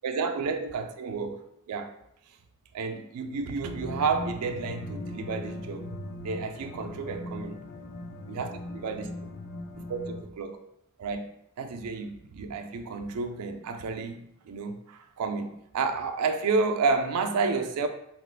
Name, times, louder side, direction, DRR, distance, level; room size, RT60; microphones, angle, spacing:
voice 1, 0.0-1.4 1.7-1.9 2.7-5.9 6.2-7.6 8.3-9.1 9.8-10.6 11.0-17.9, right 4 dB, 90° right, 6 dB, 0.3 m, -31 dB
sound 1, 3.6-10.2, left 1 dB, 45° left, 0.4 m, -39 dB
2.9 x 2.3 x 3.2 m, 0.77 s
head